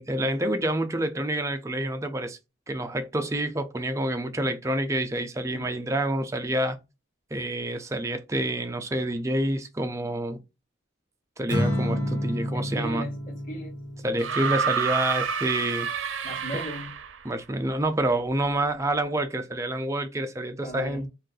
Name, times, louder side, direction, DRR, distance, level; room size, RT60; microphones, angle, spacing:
voice 1, 0.0-2.4 2.7-6.8 7.3-10.4 11.4-13.0 14.0-16.2 16.5-16.6 17.3-21.1, right 1 dB, 15° right, 0.4 m, -28 dB
Acoustic guitar / Strum, 11.5-14.8, equal, 70° left, 1.1 m, -30 dB
voice 2, 12.5-13.8 16.2-16.9 20.6-21.1, equal, 45° left, 1.3 m, -38 dB
sound 1, 14.2-17.3 18.5-18.6, right 6 dB, 85° right, 0.5 m, -29 dB
2.5 x 2.3 x 3.8 m
head